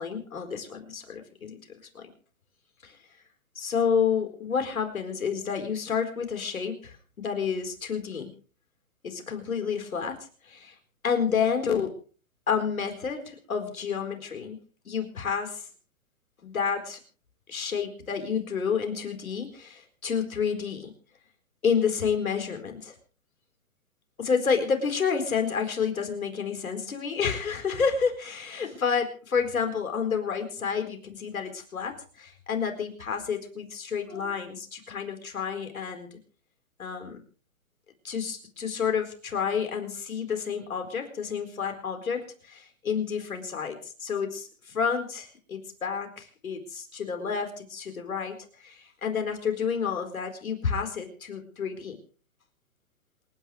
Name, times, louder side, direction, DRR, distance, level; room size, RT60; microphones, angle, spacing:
voice 1, 0.0-1.6 1.9-2.1 2.8-3.0 3.6-8.3 9.0-10.2 10.5-10.7 11.0-11.9 12.5-14.6 14.8-15.6 16.4-17.0 17.5-20.9 21.6-22.9 24.2-36.1 36.8-37.2 38.0-48.4 48.6-52.0, left 6 dB, 85° left, 5 dB, 4.5 m, -29 dB
27.5 x 10.5 x 3.3 m, 0.41 s
hypercardioid pair, 145°, 41 cm